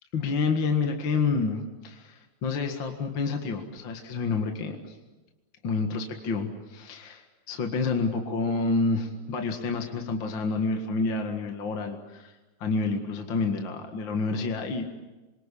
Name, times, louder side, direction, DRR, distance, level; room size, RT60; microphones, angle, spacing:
voice 1, 0.1-4.8 5.6-7.2 7.5-12.3 12.6-14.9, left 4 dB, 40° left, 4 dB, 2.1 m, -28 dB
28.0 x 24.0 x 8.5 m, 1.1 s
omnidirectional pair, 4.0 m